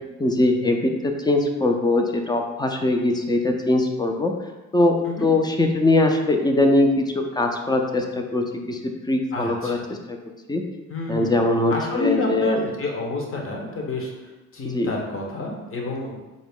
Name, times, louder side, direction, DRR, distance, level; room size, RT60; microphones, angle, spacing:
voice 1, 0.2-4.3 4.7-10.2 10.5-10.6 11.1-12.6 14.7-14.9, left 2 dB, 15° left, 3 dB, 0.3 m, -21 dB
voice 2, 9.3-9.9 10.9-11.4 11.7-16.2, left 2 dB, 45° left, 0 dB, 0.8 m, -29 dB
3.8 x 2.0 x 3.5 m, 1.1 s
cardioid pair, 90°, 30 cm